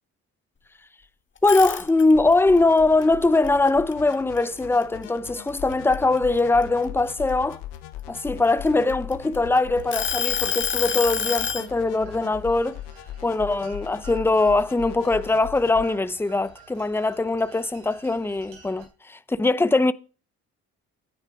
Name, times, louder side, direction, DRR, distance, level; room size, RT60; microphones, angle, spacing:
sound 1, 1.4-2.3 2.8-4.6 5.0-5.3 5.7-7.5 8.2-9.4 9.9-11.7, left 7 dB, 35° left, 1.6 m, -27 dB
voice 1, 1.4-7.6 8.1-12.8 13.2-19.9, left 2 dB, 5° left, 0.7 m, -21 dB
sound 2, 2.1-15.8, left 12 dB, 80° left, 1.1 m, -39 dB
sound 3, 9.8-18.9, right 7 dB, 85° right, 3.8 m, -51 dB
9.8 x 9.1 x 4.7 m
supercardioid pair, 60°, 32 cm